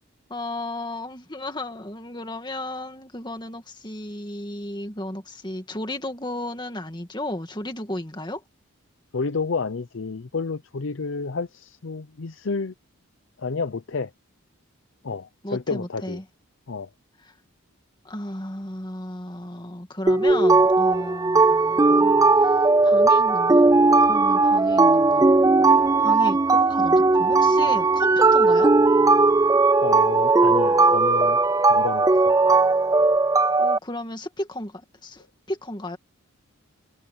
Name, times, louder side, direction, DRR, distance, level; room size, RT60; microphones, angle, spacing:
voice 1, 0.3-8.4 15.4-16.2 17.2-17.3 18.0-22.6 22.8-23.7 24.0-25.3 26.0-28.7 33.6-36.0, left 1 dB, 20° left, 2.2 m, -34 dB
voice 2, 9.1-12.7 13.4-14.1 15.0-16.2 16.7-16.9 29.8-31.4 31.7-32.4, left 4 dB, 60° left, 0.6 m, -30 dB
liquide phisio, 20.1-33.8, right 3 dB, 15° right, 0.3 m, -18 dB
head